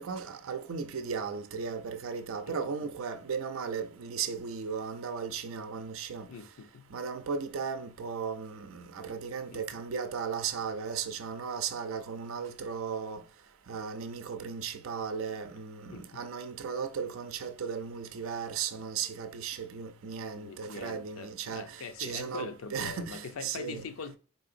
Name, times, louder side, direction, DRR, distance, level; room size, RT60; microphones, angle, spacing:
voice 1, 0.0-6.3 6.9-13.2 13.7-23.9, right 6 dB, 80° right, 0.5 m, -36 dB
voice 2, 6.3-6.9 9.5-9.6 15.8-16.2 20.3-24.2, left 5 dB, 85° left, 0.5 m, -43 dB
4.2 x 2.7 x 2.6 m
head